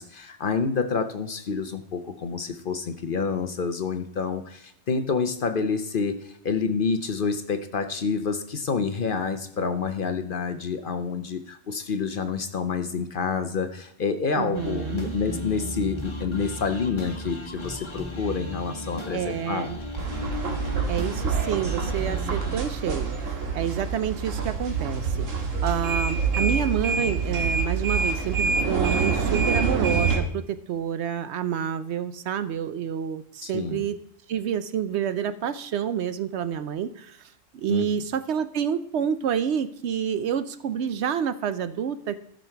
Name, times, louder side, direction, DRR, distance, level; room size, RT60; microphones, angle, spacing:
voice 1, 0.0-19.7 33.4-33.8 37.7-37.9, left 5 dB, 50° left, 9 dB, 0.8 m, -28 dB
voice 2, 14.4-15.2 19.1-19.8 20.9-25.3 25.6-34.0 34.3-42.2, right 8 dB, 65° right, 12 dB, 0.8 m, -28 dB
sound 1, 14.5-22.6, equal, 25° left, 1.3 m, -36 dB
sound 2, 20.0-30.2, right 5 dB, 80° right, 1.9 m, -26 dB
13.0 x 6.4 x 4.5 m, 0.72 s
omnidirectional pair, 1.3 m